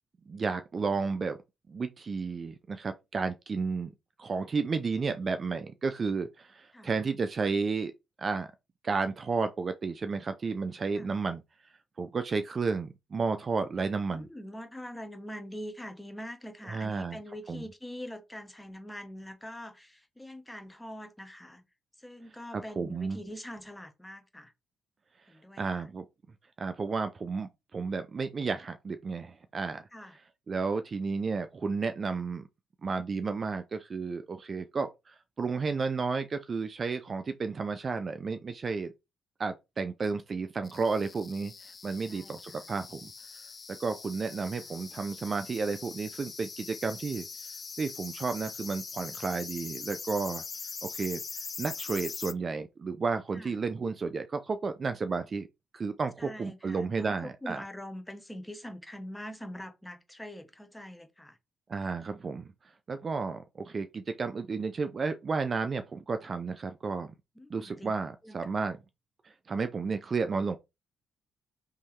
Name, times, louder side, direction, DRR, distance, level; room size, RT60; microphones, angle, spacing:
voice 1, 0.3-1.4 1.7-3.9 4.2-7.9 8.2-8.5 8.8-11.4 12.0-14.3 16.7-17.2 17.5-17.6 22.5-23.2 25.6-26.0 26.6-29.9 30.5-32.5 32.8-38.9 39.4-43.1 43.7-47.3 47.8-50.4 50.8-51.2 51.6-55.5 55.7-57.6 61.7-62.5 62.9-67.1 67.5-68.8 69.2-70.6, right 4 dB, 40° right, 0.5 m, -32 dB
voice 2, 14.1-21.6 22.0-24.5 25.3-25.9 29.9-30.2 42.1-42.7 44.3-44.4 53.3-53.5 56.2-61.4 67.4-67.9 68.2-68.4, equal, 10° left, 1.0 m, -44 dB
sound 1, 40.6-52.3, left 5 dB, 40° left, 0.4 m, -42 dB
3.7 x 3.1 x 4.4 m
cardioid pair, 90°, 0 cm